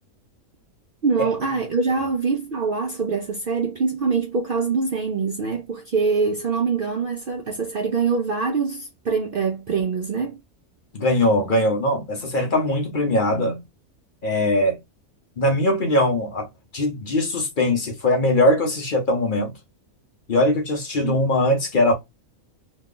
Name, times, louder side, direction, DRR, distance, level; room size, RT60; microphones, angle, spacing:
voice 1, 1.0-10.4 21.0-21.2, right 5 dB, 60° right, 0.5 m, -24 dB
voice 2, 10.9-13.6 14.2-14.8 15.4-16.5 16.7-19.5 20.3-21.9, left 1 dB, 45° left, 0.7 m, -21 dB
3.0 x 2.3 x 3.7 m
omnidirectional pair, 1.5 m